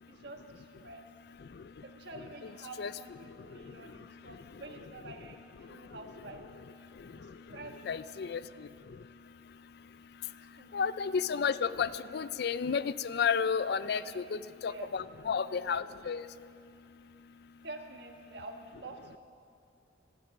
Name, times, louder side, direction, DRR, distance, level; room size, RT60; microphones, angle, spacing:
voice 1, 0.1-1.0 1.8-6.5 6.8-7.7 8.2-8.7 10.5-10.9 13.9-14.2 14.6-14.9 17.6-19.2, right 2 dB, 60° right, 4 dB, 1.3 m, -48 dB
voice 2, 7.9-8.4 10.7-16.2, left 6 dB, 55° left, 15 dB, 0.4 m, -31 dB
16.0 x 13.5 x 6.0 m, 2.5 s
head